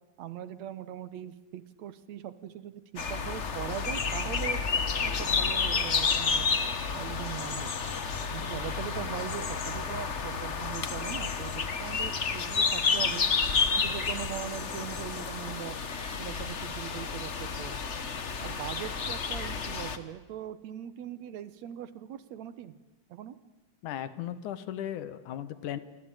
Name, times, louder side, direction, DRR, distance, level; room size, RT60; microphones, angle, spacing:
voice 1, 0.2-4.6 5.0-7.7 8.3-13.2 13.7-15.8 16.2-17.8 18.4-22.8 23.1-23.4, right 10 dB, 70° right, 14 dB, 2.2 m, -40 dB
sound 1, 3.0-20.0, left 5 dB, 50° left, 0.8 m, -30 dB
voice 2, 23.8-25.8, left 11 dB, 85° left, 14 dB, 2.8 m, -36 dB
27.0 x 24.5 x 9.1 m, 1.1 s
omnidirectional pair, 3.5 m